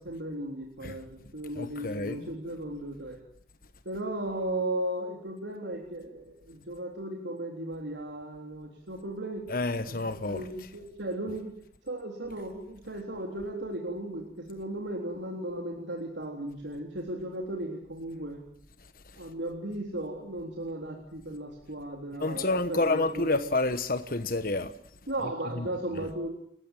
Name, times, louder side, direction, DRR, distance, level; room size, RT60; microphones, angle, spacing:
voice 1, 0.0-3.2 3.9-9.5 9.9-11.5 11.9-18.4 19.2-23.4 25.1-26.3, right 1 dB, 90° right, 3.7 m, -36 dB
voice 2, 1.6-2.3 9.5-10.4 22.2-24.7 25.6-25.7, left 2 dB, 50° left, 1.2 m, -29 dB
29.0 x 15.5 x 9.0 m
head